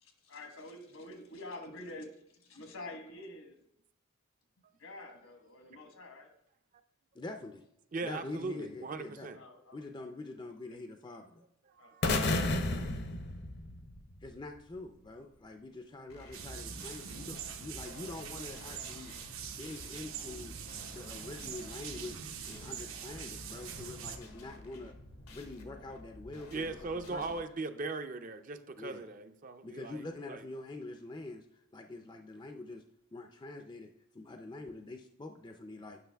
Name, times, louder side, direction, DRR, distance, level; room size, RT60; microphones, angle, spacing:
voice 1, 0.0-3.5 4.8-6.3 9.3-9.8 11.8-11.9, left 2 dB, 75° left, 5 dB, 1.2 m, -47 dB
voice 2, 7.1-7.6 8.0-9.3 9.7-11.3 14.2-19.1 19.5-20.5 20.9-24.9 25.3-27.2 28.8-29.0 29.6-31.5 31.7-32.8 33.1-36.0, left 2 dB, 20° left, 5 dB, 0.4 m, -45 dB
voice 3, 7.9-9.4 26.5-30.5, right 3 dB, 40° right, 9 dB, 0.5 m, -39 dB
sound 1, 12.0-14.1, left 2 dB, 55° left, 0.7 m, -31 dB
sound 2, 16.1-27.4, left 1 dB, 90° left, 1.3 m, -51 dB
sound 3, 16.3-24.2, right 8 dB, 75° right, 0.8 m, -44 dB
9.1 x 6.0 x 3.4 m, 0.76 s
head